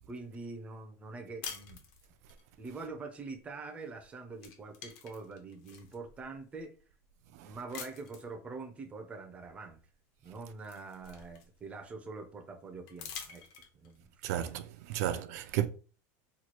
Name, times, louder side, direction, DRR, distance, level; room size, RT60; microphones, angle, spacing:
voice 1, 0.1-1.8 2.6-6.8 7.3-9.8 10.2-13.4 13.7-14.1, right 3 dB, 15° right, 0.4 m, -44 dB
sound 1, 1.4-2.4 3.8-4.0 4.3-6.0 6.6-6.7 7.7-8.3 9.8-9.9 10.2-11.8 12.9-14.0, left 7 dB, 55° left, 0.8 m, -47 dB
voice 2, 14.2-15.7, right 12 dB, 75° right, 0.4 m, -33 dB
3.0 x 2.3 x 4.2 m
cardioid pair, 165°, 9 cm